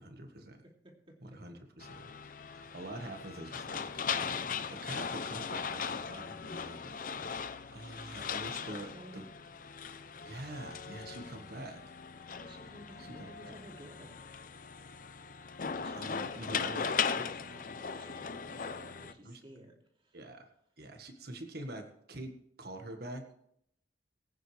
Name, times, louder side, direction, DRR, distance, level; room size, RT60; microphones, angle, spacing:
voice 1, 0.0-0.6 1.2-2.1 2.5-7.0 7.7-9.2 10.2-11.8 13.0-13.6 15.9-17.2 19.2-19.4 20.1-20.5 20.8-23.3, right 1 dB, 55° right, 5 dB, 1.7 m, -45 dB
voice 2, 0.6-1.4 2.1-2.7 8.6-9.3 12.3-14.2 15.6-20.2, equal, 30° right, 0 dB, 2.8 m, -53 dB
sound 1, 1.8-19.1, left 6 dB, 45° left, 0.7 m, -39 dB
22.5 x 9.2 x 3.4 m, 0.70 s
head